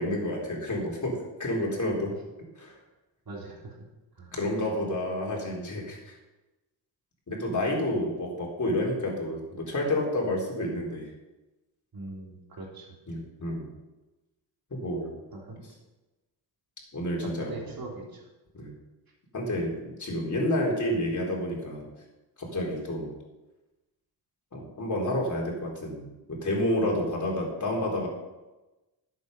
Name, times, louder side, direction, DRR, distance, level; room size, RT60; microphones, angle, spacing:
voice 1, 0.0-2.1 2.6-2.7 4.3-6.1 7.3-11.1 13.1-13.7 14.7-15.1 16.9-17.7 18.5-18.7 19.3-21.8 22.4-23.1 24.5-28.1, left 1 dB, 40° left, -2 dB, 4.0 m, -30 dB
voice 2, 3.3-3.7 4.2-4.3 11.9-12.9 15.5-15.6 17.5-18.2, right 2 dB, 50° right, -1 dB, 3.6 m, -41 dB
11.0 x 8.2 x 5.5 m, 1.1 s
cardioid pair, 75°, 45 cm